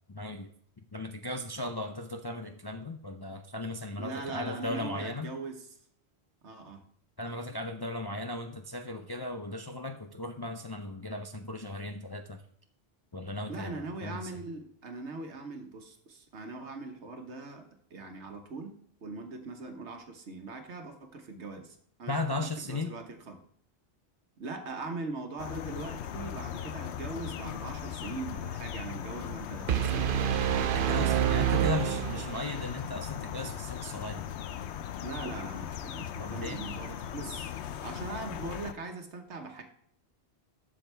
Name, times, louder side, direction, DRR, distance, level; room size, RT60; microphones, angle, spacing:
voice 1, 0.1-0.5 0.9-5.3 7.2-12.4 13.1-14.4 22.1-22.9 30.7-34.3 36.2-36.6, left 2 dB, 35° left, 5 dB, 0.4 m, -36 dB
voice 2, 4.0-5.6 6.4-6.8 13.5-18.8 19.0-22.2 22.6-23.4 24.4-30.2 31.3-31.9 35.0-37.5 37.8-39.6, right 3 dB, 80° right, 5 dB, 1.5 m, -41 dB
sound 1, 25.4-38.7, left 9 dB, 80° left, 0.9 m, -38 dB
sound 2, 29.7-32.7, right 11 dB, 60° right, 0.7 m, -27 dB
12.0 x 7.2 x 3.4 m, 0.66 s
omnidirectional pair, 1.1 m